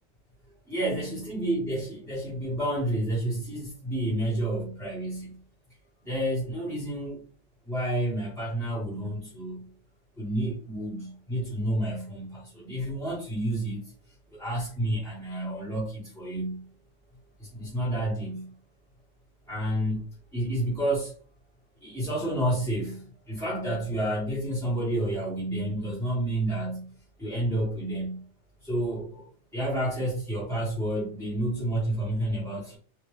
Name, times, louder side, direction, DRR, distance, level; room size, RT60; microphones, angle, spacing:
voice 1, 0.7-5.4 6.0-7.2 7.7-9.6 10.2-13.8 14.3-16.6 17.4-18.5 19.5-20.1 20.3-21.1 21.8-26.9 27.2-28.2 28.6-29.3 29.5-32.8, right 1 dB, ahead, -8 dB, 1.0 m, -30 dB
3.7 x 2.4 x 3.1 m, 0.42 s
omnidirectional pair, 1.4 m